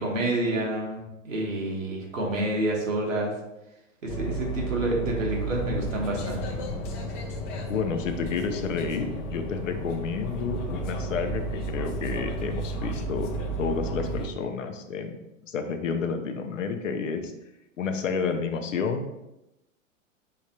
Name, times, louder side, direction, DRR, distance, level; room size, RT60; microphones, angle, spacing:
voice 1, 0.0-3.3 4.0-6.6, right 1 dB, 75° right, -2 dB, 1.3 m, -28 dB
sound 1, 4.1-14.3, right 1 dB, 35° left, 0.7 m, -32 dB
voice 2, 7.7-13.3 13.6-15.2 15.4-17.3 17.8-19.1, left 5 dB, 70° left, 6 dB, 0.7 m, -30 dB
4.7 x 3.4 x 2.8 m, 0.91 s
figure-of-eight pair, 95°, 40 cm